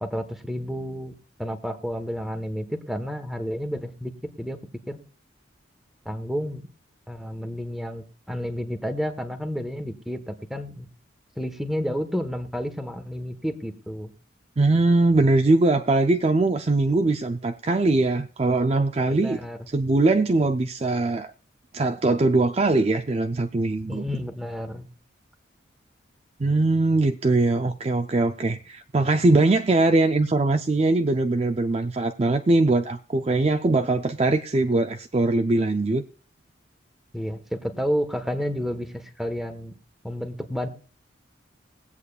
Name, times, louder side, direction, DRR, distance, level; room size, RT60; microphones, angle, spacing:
voice 1, 0.0-1.1 1.4-4.6 4.9-5.0 6.0-6.6 7.1-10.9 11.4-14.1 19.1-19.6 23.9-24.9 37.1-39.7 40.0-40.7, equal, ahead, 1.1 m, -30 dB
voice 2, 14.6-19.4 19.7-21.3 21.7-24.1 26.4-36.0, right 2 dB, 30° right, 0.4 m, -21 dB
21.5 x 8.3 x 2.4 m
head